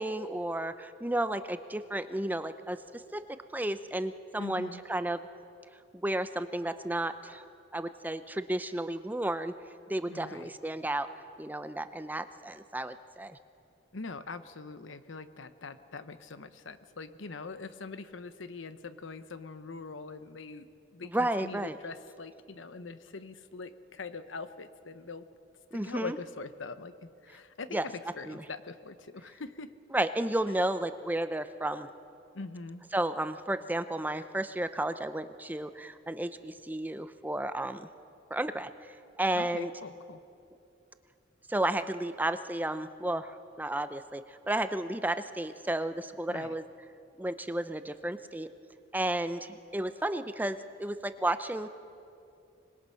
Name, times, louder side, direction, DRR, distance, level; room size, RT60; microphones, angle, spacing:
voice 1, 0.0-2.8 3.1-5.2 6.0-7.4 7.7-9.5 9.9-11.1 11.4-13.4 21.1-21.8 25.7-26.2 27.7-27.8 28.3-28.4 29.9-31.9 32.9-37.9 38.3-38.7 39.2-39.7 41.5-46.6 47.2-48.5 48.9-51.7, right 1 dB, 10° right, 11 dB, 0.6 m, -32 dB
voice 2, 4.4-4.8 10.1-10.5 13.9-25.3 25.7-29.7 32.3-32.8 39.3-40.2 46.3-46.5, left 4 dB, 90° left, 12 dB, 0.9 m, -43 dB
26.0 x 20.5 x 5.7 m, 2.6 s
head